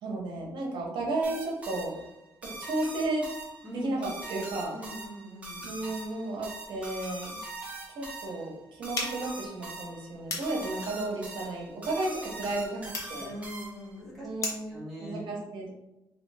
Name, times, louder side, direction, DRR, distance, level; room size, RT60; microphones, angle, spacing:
voice 1, 0.0-2.0 2.4-3.3 3.7-4.7 5.6-7.4 7.9-13.3 14.2-15.7, right 2 dB, 65° right, -2 dB, 0.9 m, -33 dB
sound 1, 1.2-14.0, right 2 dB, 15° right, 0.9 m, -42 dB
voice 2, 3.6-4.0 4.7-5.7 13.2-14.3 14.7-15.3, equal, 5° left, -7 dB, 1.3 m, -41 dB
sound 2, 8.9-14.8, left 3 dB, 35° left, 0.8 m, -40 dB
3.2 x 2.7 x 3.3 m, 0.93 s
cardioid pair, 165°, 9 cm